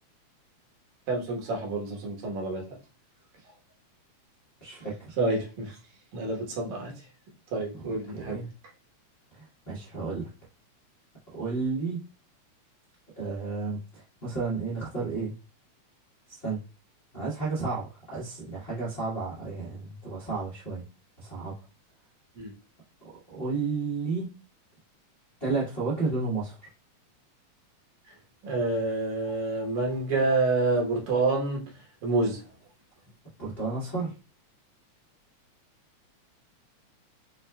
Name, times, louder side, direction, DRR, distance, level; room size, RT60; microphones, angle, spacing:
voice 1, 1.1-2.6 5.2-5.8 6.1-6.9 7.5-8.4 22.4-22.5 28.4-31.6 32.0-32.4, right 3 dB, 75° right, -1 dB, 2.6 m, -28 dB
voice 2, 4.6-5.2 7.8-8.5 9.4-10.3 11.3-12.0 13.2-15.3 16.3-16.6 17.1-20.8 21.2-21.5 23.3-24.3 25.4-26.5 33.4-34.1, right 4 dB, 60° left, -8 dB, 0.6 m, -32 dB
6.5 x 2.3 x 2.2 m, 0.33 s
omnidirectional pair, 3.4 m